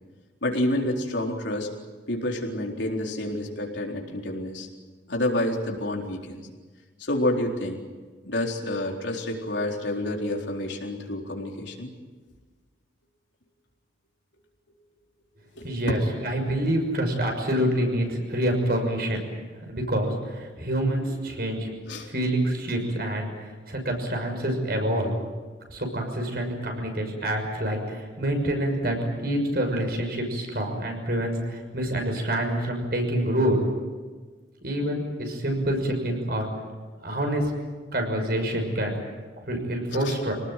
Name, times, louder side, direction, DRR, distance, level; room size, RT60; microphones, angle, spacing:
voice 1, 0.4-1.7 2.1-4.7 5.1-6.4 7.0-7.8 8.2-11.9 15.6-16.0 21.9-22.1 39.9-40.2, left 1 dB, 70° left, 0 dB, 4.2 m, -28 dB
voice 2, 15.6-19.2 19.7-21.7 22.1-23.3 23.7-25.2 25.7-29.0 29.2-33.6 34.6-36.5 37.0-37.5 37.9-38.9 39.4-40.3, right 1 dB, 55° right, 3 dB, 6.2 m, -27 dB
26.5 x 19.0 x 9.2 m, 1.4 s
head